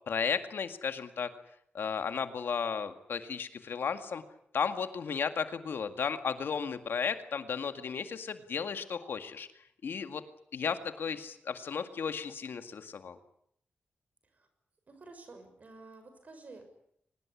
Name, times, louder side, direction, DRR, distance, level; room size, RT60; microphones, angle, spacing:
voice 1, 0.1-1.3 1.7-4.2 4.5-9.5 9.8-10.2 10.5-13.2, left 6 dB, 70° left, 8 dB, 2.0 m, -34 dB
voice 2, 14.9-16.6, right 3 dB, 40° right, 7 dB, 6.4 m, -51 dB
24.0 x 20.0 x 9.8 m, 0.71 s
wide cardioid pair, 170°, 4 cm